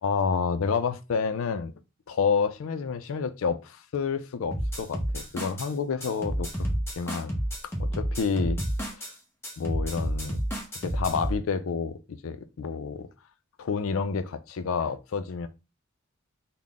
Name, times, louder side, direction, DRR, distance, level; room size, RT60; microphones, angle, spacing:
voice 1, 0.0-1.7 2.1-6.5 7.0-7.3 7.8-8.6 9.0-9.1 9.6-10.4 10.8-13.1 13.6-15.5, left 5 dB, 80° left, 0.4 m, -29 dB
sound 1, 4.5-5.7 6.0-9.1 9.4-11.4, equal, 10° left, 0.9 m, -30 dB
3.8 x 2.1 x 3.5 m
head